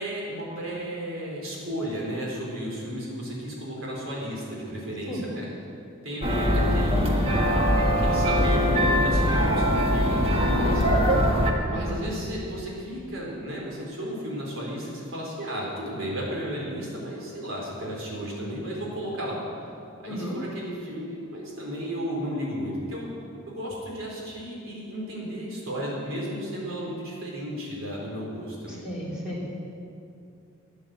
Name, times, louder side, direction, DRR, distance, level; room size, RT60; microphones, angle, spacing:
voice 1, 0.0-5.5 6.0-7.4 8.0-11.0 11.7-19.4 20.0-23.1 23.5-28.9, equal, 70° right, -3 dB, 4.2 m, -34 dB
sound 1, 6.2-11.5, equal, 30° right, 1.4 m, -22 dB
voice 2, 11.7-12.0 20.1-20.3 28.8-29.4, equal, 5° right, -7 dB, 3.4 m, -34 dB
13.5 x 8.8 x 7.9 m, 2.5 s
head